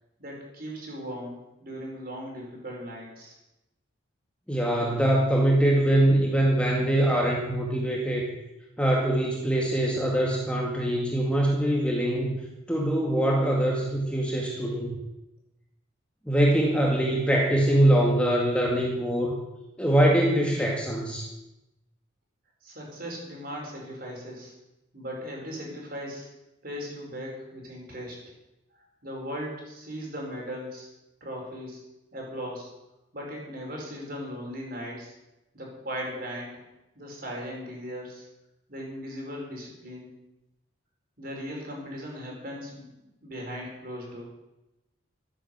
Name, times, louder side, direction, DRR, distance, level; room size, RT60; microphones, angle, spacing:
voice 1, 0.2-3.3 22.6-24.5 24.9-26.3 26.6-28.2 29.0-30.9 31.2-31.8 32.1-32.7 33.1-35.1 35.5-36.5 37.0-38.3 38.7-40.1 41.2-42.8 43.2-44.2, equal, 45° right, -1 dB, 5.3 m, -38 dB
voice 2, 4.5-8.3 8.8-12.3 12.7-14.9 16.3-19.4 19.8-21.3, right 1 dB, 5° left, -1 dB, 2.0 m, -23 dB
13.0 x 9.5 x 8.0 m, 0.94 s
head